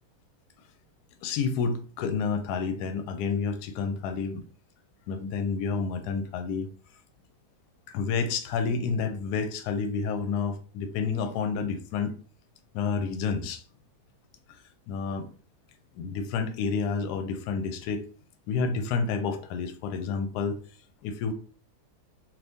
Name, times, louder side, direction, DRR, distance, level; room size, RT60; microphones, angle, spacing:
voice 1, 1.2-4.4 5.1-6.7 7.9-12.2 12.7-13.6 14.9-15.3 15.9-18.0 18.5-20.6 21.0-21.3, left 5 dB, 75° left, 8 dB, 1.1 m, -29 dB
2.8 x 2.6 x 3.4 m, 0.40 s
omnidirectional pair, 1.7 m